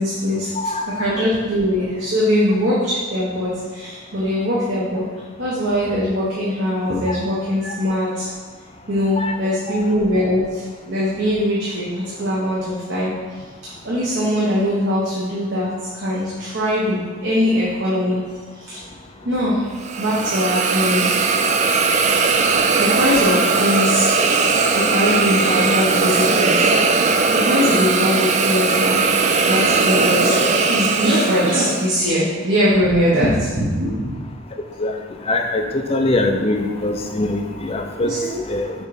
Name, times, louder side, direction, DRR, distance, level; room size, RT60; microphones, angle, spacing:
voice 1, 0.0-0.5 0.9-5.0 5.4-8.3 8.9-13.1 13.8-18.2 18.6-18.8 19.2-19.7 20.0-21.1 22.8-24.1 24.7-26.7 27.0-29.0 29.4-34.2 38.0-38.4, equal, 60° right, -8 dB, 1.1 m, -21 dB
Hiss, 19.8-31.9, right 4 dB, 35° right, 0.3 m, -18 dB
voice 2, 35.3-38.1 38.5-38.7, left 2 dB, 30° left, 4 dB, 0.5 m, -22 dB
6.5 x 3.1 x 4.7 m, 1.5 s
head